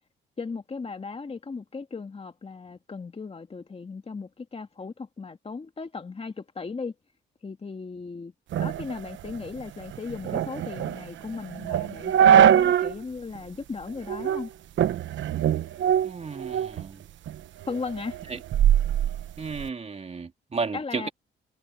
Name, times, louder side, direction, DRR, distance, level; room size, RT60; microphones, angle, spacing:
voice 1, 0.4-6.9 7.4-8.3 8.6-14.5 17.7-18.2 20.7-21.1, left 4 dB, 30° left, 2.4 m, -36 dB
sound 1, 8.5-13.0 13.3-13.4 14.1-14.4 14.8-16.9 17.3-19.7, right 9 dB, 70° right, 1.1 m, -23 dB
voice 2, 16.0-17.0 18.3-18.4 19.4-21.1, right 4 dB, 35° right, 3.2 m, -33 dB
cardioid pair, 90°, 20 cm